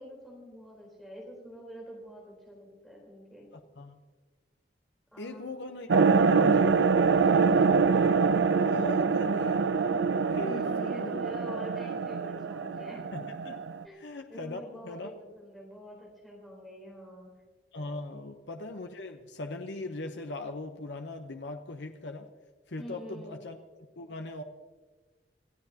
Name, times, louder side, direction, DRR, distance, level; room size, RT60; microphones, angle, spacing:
voice 1, 0.0-3.5 5.1-5.5 7.3-7.8 10.4-13.0 13.8-14.0 14.3-17.3 18.1-18.3 22.8-23.4, equal, ahead, -4 dB, 3.9 m, -46 dB
voice 2, 3.5-4.0 5.2-5.9 6.2-6.8 7.9-8.1 8.4-9.7 10.3-11.2 13.1-13.6 14.0-15.1 17.7-22.3 22.7-23.6 24.0-24.4, left 2 dB, 75° left, 5 dB, 0.9 m, -40 dB
sound 1, 5.9-13.8, right 5 dB, 75° right, 0.5 m, -25 dB
27.5 x 14.5 x 2.9 m, 1.3 s
head